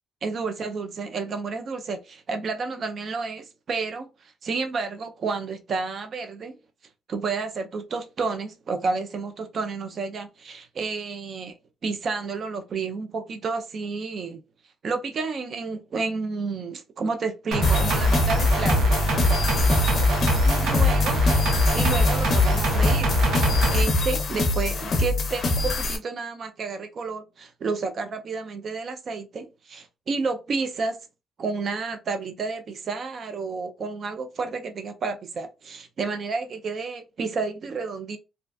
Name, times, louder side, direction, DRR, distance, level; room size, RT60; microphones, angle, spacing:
voice 1, 0.2-6.6 7.1-11.6 11.8-14.4 14.8-19.0 20.4-21.2 21.7-23.2 23.7-31.0 31.4-38.2, right 4 dB, 45° right, 0.4 m, -31 dB
sound 1, 17.5-23.8, equal, 80° right, 0.7 m, -22 dB
sound 2, 17.6-26.0, left 2 dB, 45° left, 0.5 m, -25 dB
2.5 x 2.3 x 2.3 m
cardioid pair, 120°, 0 cm